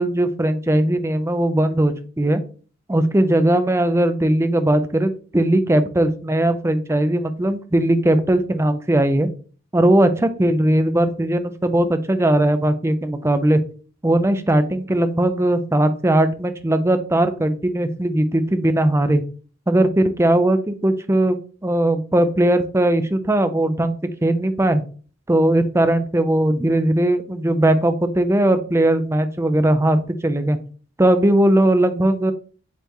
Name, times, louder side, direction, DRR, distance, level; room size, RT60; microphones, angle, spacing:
voice 1, 0.0-2.4 2.9-9.3 9.7-13.6 14.0-19.2 19.7-21.4 21.6-24.8 25.3-30.6 31.0-32.3, right 1 dB, 15° right, 9 dB, 0.6 m, -19 dB
8.0 x 4.3 x 3.0 m, 0.39 s
head